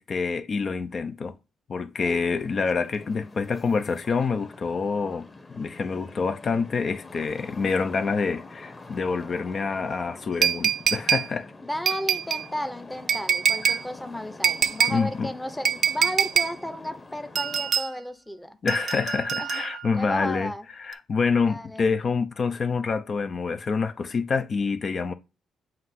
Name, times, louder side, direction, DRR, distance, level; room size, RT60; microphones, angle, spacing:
voice 1, 0.0-1.3 1.7-5.3 5.5-11.5 13.6-13.8 14.9-15.3 18.6-20.5 20.8-25.1, left 5 dB, 45° left, 0.6 m, -27 dB
sound 1, 2.1-17.7, left 3 dB, 25° left, 1.2 m, -45 dB
sound 2, 10.4-11.3 11.9-12.5 13.1-13.8 14.4-15.0 15.6-16.5 17.4-17.9 18.7-19.9 20.9-21.0, right 7 dB, 60° right, 0.6 m, -24 dB
voice 2, 11.6-18.6 19.4-19.6 19.9-20.6 21.4-21.9, equal, 5° left, 0.8 m, -34 dB
7.7 x 2.6 x 5.9 m
cardioid pair, 90°, 0 cm